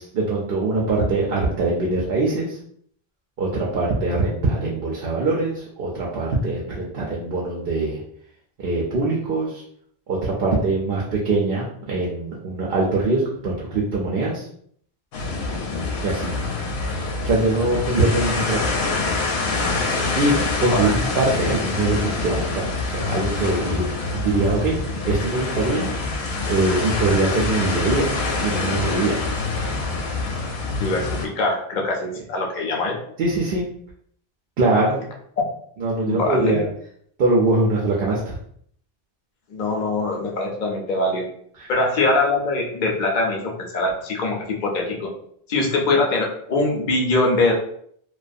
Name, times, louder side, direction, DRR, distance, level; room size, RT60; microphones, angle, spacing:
voice 1, 0.0-2.6 3.4-8.0 8.6-9.6 10.1-14.5 16.0-16.3 17.2-18.7 20.1-23.9 24.1-25.9 26.5-28.1 28.4-29.2 33.2-33.6 34.6-35.0 35.8-36.7 37.2-38.4 41.6-41.7, right 2 dB, 65° right, -3 dB, 0.7 m, -22 dB
sound 1, 15.1-31.3, left 3 dB, 80° left, 0.8 m, -25 dB
voice 2, 30.8-33.0 36.1-36.6 39.5-41.3 41.7-45.1 45.5-47.5, left 2 dB, 55° left, 0 dB, 0.7 m, -23 dB
2.4 x 2.2 x 2.5 m, 0.64 s
omnidirectional pair, 1.0 m